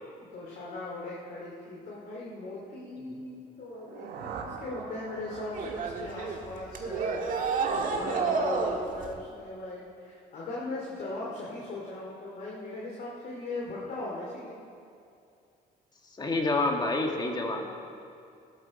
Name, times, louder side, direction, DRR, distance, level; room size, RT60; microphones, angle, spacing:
voice 1, 0.2-14.6, left 2 dB, 55° left, -4 dB, 2.7 m, -39 dB
sound 1, 3.6-7.5, right 5 dB, 75° right, 1.5 m, -44 dB
sound 2, 5.5-9.1, right 4 dB, 55° right, 1.5 m, -30 dB
voice 2, 16.2-17.7, left 2 dB, 25° left, 2 dB, 1.9 m, -28 dB
17.5 x 12.0 x 4.3 m, 2.5 s
cardioid pair, 110°, 17 cm